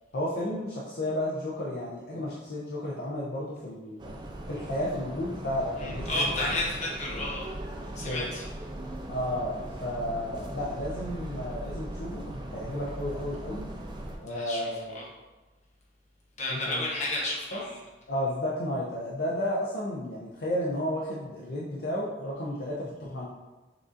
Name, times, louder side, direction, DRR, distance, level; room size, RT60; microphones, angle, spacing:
voice 1, 0.1-4.1 4.5-6.6 7.1-7.3 8.0-8.3 9.1-13.7 14.2-15.0 16.5-16.8 17.5-17.6 18.1-23.3, left 1 dB, 60° left, -6 dB, 0.5 m, -32 dB
sound 1, 4.0-14.2, right 1 dB, 25° right, 0.3 m, -39 dB
voice 2, 5.8-7.5 7.9-8.4 14.3-15.1 16.4-17.8, left 1 dB, 40° left, -4 dB, 0.9 m, -32 dB
6.4 x 2.4 x 2.5 m, 1.2 s
head